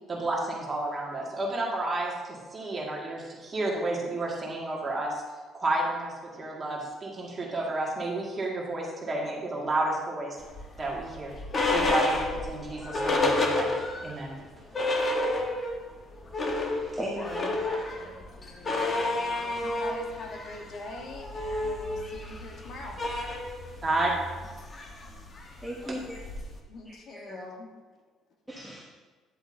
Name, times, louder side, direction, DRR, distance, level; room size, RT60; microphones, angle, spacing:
voice 1, 0.1-5.2 5.5-10.4 10.8-11.3 11.7-14.4 23.8-24.1 25.8-25.9, right 2 dB, 25° right, -3 dB, 1.8 m, -31 dB
sound 1, 10.5-14.2 14.5-14.6 14.7-15.8 16.1-26.6, left 2 dB, 30° left, 1.0 m, -30 dB
voice 2, 16.6-17.6 25.6-26.2 26.8-27.0 27.3-27.4 28.5-28.8, equal, ahead, -5 dB, 1.0 m, -37 dB
voice 3, 17.5-23.0 26.7-27.7, left 2 dB, 50° left, 1 dB, 1.2 m, -44 dB
9.6 x 7.8 x 2.6 m, 1.4 s
cardioid pair, 150°, 0 cm